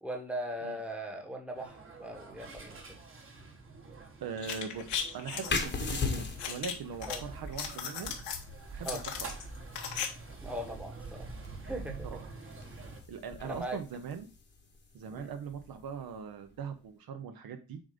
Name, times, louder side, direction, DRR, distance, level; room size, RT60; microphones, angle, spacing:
voice 1, 0.0-3.0 7.0-7.2 8.8-9.0 10.4-11.3 11.6-12.2 13.4-13.8 15.1-15.3, right 1 dB, 5° right, 2 dB, 1.1 m, -39 dB
sound 1, 1.5-13.0, right 3 dB, 30° right, 1.2 m, -47 dB
voice 2, 4.2-4.9 5.1-8.2 8.7-9.3 12.0-12.3 13.1-14.3 14.9-17.8, right 6 dB, 55° right, 8 dB, 0.8 m, -41 dB
sound 2, 4.4-5.6 6.4-7.2 7.5-8.4 8.8-10.1 10.3-10.4, left 8 dB, 75° left, 1.3 m, -36 dB
sound 3, 5.5-16.8, left 4 dB, 25° left, 1.1 m, -40 dB
7.2 x 2.6 x 5.0 m, 0.33 s
cardioid pair, 130°, 43 cm